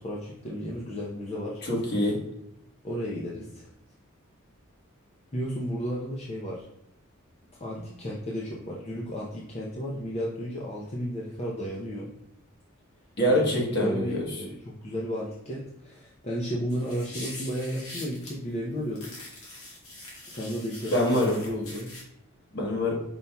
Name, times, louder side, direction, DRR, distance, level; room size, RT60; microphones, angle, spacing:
voice 1, 0.0-1.6 2.8-3.7 5.3-6.6 7.6-12.1 13.3-13.4 13.7-19.1 20.3-21.9, equal, 30° left, -4 dB, 0.6 m, -33 dB
voice 2, 1.6-2.2 13.2-14.3 20.9-21.4 22.5-23.0, left 1 dB, 50° left, -2 dB, 1.3 m, -25 dB
sound 1, 16.7-18.3 18.9-22.0, left 2 dB, 80° left, 1.6 m, -43 dB
5.3 x 4.2 x 2.2 m, 0.79 s
head